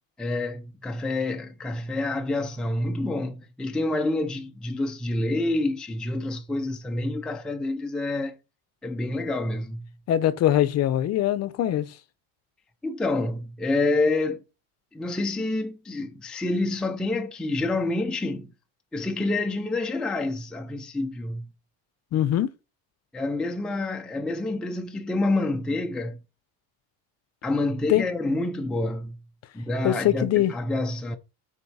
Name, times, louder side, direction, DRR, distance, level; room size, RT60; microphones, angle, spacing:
voice 1, 0.2-8.4 8.8-9.9 12.8-14.4 14.9-18.5 18.9-21.5 23.1-26.2 27.4-29.2 29.5-31.2, left 2 dB, ahead, 0.5 m, -28 dB
voice 2, 10.1-11.9 22.1-22.5 27.9-28.0 29.8-30.5, left 12 dB, 40° left, 0.7 m, -22 dB
7.0 x 4.4 x 4.8 m
cardioid pair, 155°, 39 cm